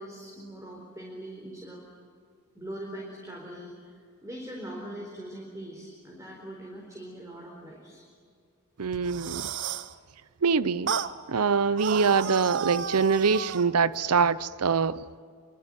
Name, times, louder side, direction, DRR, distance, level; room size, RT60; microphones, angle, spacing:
voice 1, 0.0-1.8 2.5-8.1, right 1 dB, 15° right, 4.3 m, -42 dB
voice 2, 8.8-9.5 10.4-10.9 11.3-15.0, right 5 dB, 85° right, 0.7 m, -24 dB
sound 1, 8.9-9.9 10.9-11.1 11.8-13.7, right 7 dB, 55° right, 0.9 m, -32 dB
26.5 x 24.5 x 9.1 m
head